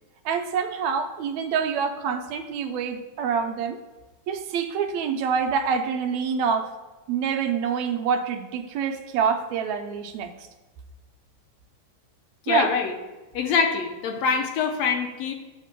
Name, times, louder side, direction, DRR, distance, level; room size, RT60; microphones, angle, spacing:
voice 1, 0.3-3.8 4.3-6.7 7.1-10.3 12.5-12.7, right 6 dB, 80° right, 6 dB, 1.8 m, -26 dB
voice 2, 12.5-12.9 13.3-15.3, left 6 dB, 70° left, 4 dB, 1.9 m, -24 dB
7.3 x 4.6 x 5.8 m, 1.2 s
omnidirectional pair, 3.5 m